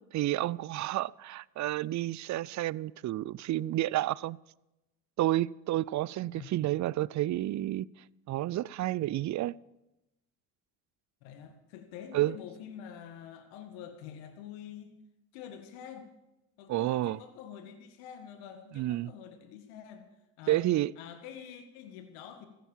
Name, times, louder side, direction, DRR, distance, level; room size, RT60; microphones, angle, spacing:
voice 1, 0.1-4.4 5.2-7.9 8.3-9.6 12.1-12.4 16.7-17.2 18.7-19.1 20.5-20.9, right 15 dB, 40° right, 0.4 m, -30 dB
voice 2, 11.2-15.0 15.3-16.1 16.6-20.1 20.4-20.6 21.0-22.5, left 8 dB, 85° left, 1.9 m, -46 dB
15.0 x 10.5 x 7.2 m
supercardioid pair, 85°, 45 cm